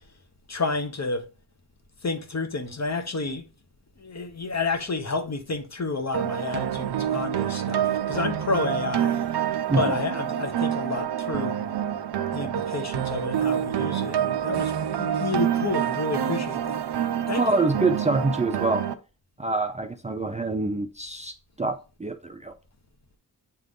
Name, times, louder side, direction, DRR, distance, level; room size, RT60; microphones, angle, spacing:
voice 1, 0.5-1.3 2.0-3.5 4.0-9.5 9.8-11.6 12.3-16.8 17.3-17.5, left 3 dB, 40° left, 1.2 m, -30 dB
sound 1, 6.1-18.9, right 9 dB, 80° right, 0.7 m, -27 dB
voice 2, 17.4-18.9 19.4-22.6, right 3 dB, 15° right, 0.5 m, -26 dB
8.3 x 3.6 x 3.7 m
cardioid pair, 65°, 40 cm